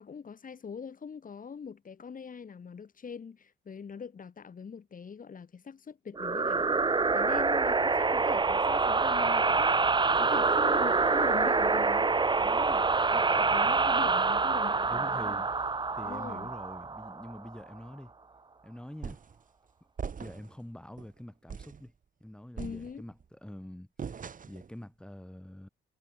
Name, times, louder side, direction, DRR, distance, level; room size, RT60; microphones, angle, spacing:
voice 1, 0.0-12.8 13.1-15.4 16.0-16.5 22.6-23.1, left 6 dB, 40° left, 7.9 m, -43 dB
sound 1, 6.2-17.5, right 4 dB, 20° right, 1.4 m, -26 dB
voice 2, 14.9-15.5 15.9-18.1 18.6-19.2 20.2-21.9 22.2-24.1 24.5-25.7, left 1 dB, 5° left, 3.5 m, -45 dB
sound 2, 19.0-19.4 20.0-20.6 21.0-21.1 21.5-21.8 22.6-23.2 24.0-24.7, right 6 dB, 40° right, 2.8 m, -41 dB
cardioid pair, 125°, 21 cm